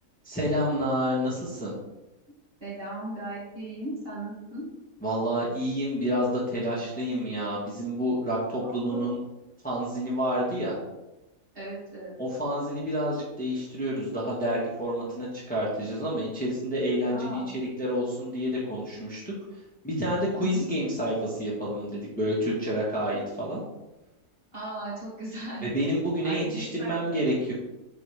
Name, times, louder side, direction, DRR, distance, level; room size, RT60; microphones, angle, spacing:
voice 1, 0.2-1.7 5.0-9.2 9.6-10.8 12.2-19.3 19.8-23.6 25.6-27.5, equal, 5° left, -7 dB, 1.3 m, -29 dB
voice 2, 2.6-4.7 8.6-9.0 11.5-12.1 17.1-17.5 20.4-20.6 24.5-25.7 26.2-27.2, right 2 dB, 45° right, -7 dB, 2.6 m, -37 dB
8.1 x 3.9 x 3.4 m, 0.99 s
omnidirectional pair, 1.4 m